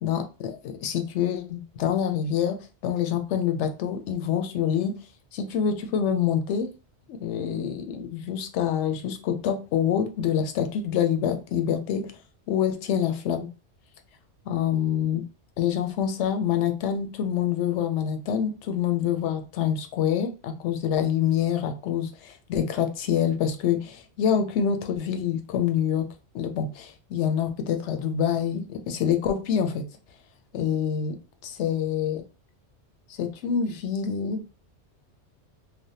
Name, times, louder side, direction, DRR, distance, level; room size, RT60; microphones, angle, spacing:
voice 1, 0.0-2.6 2.8-4.9 5.3-6.7 7.1-12.0 12.5-13.5 14.5-15.2 15.6-26.1 26.3-29.8 30.5-31.2 31.4-32.2 33.2-34.4, left 8 dB, 85° left, 7 dB, 0.9 m, -26 dB
3.4 x 2.1 x 2.7 m, 0.33 s
omnidirectional pair, 1.2 m